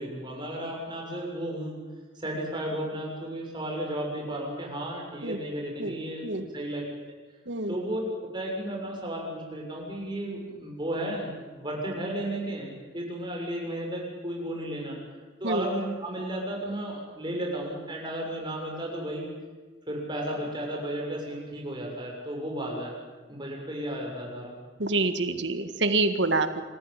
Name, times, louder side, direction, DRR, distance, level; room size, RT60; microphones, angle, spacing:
voice 1, 0.0-1.8 2.1-6.2 6.5-6.8 7.7-8.0 8.3-15.0 15.4-19.3 19.9-22.9 23.3-24.5, right 1 dB, 25° right, -1 dB, 6.9 m, -33 dB
voice 2, 24.8-26.6, right 2 dB, 75° right, 9 dB, 1.8 m, -26 dB
26.0 x 14.5 x 9.9 m, 1.3 s
head